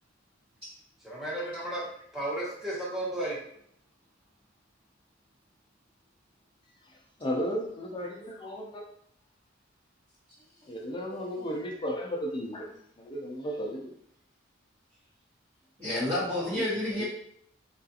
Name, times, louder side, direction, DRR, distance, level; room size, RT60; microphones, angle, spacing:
voice 1, 1.0-1.8 2.1-3.4 11.3-11.4 16.3-16.5, right 1 dB, ahead, -5 dB, 0.8 m, -34 dB
voice 2, 6.8-8.8 10.6-12.7 13.0-13.9 16.5-17.0, equal, 25° left, -1 dB, 0.5 m, -35 dB
voice 3, 15.8-17.0, left 1 dB, 30° right, -12 dB, 1.0 m, -29 dB
3.5 x 2.4 x 2.7 m, 0.68 s
head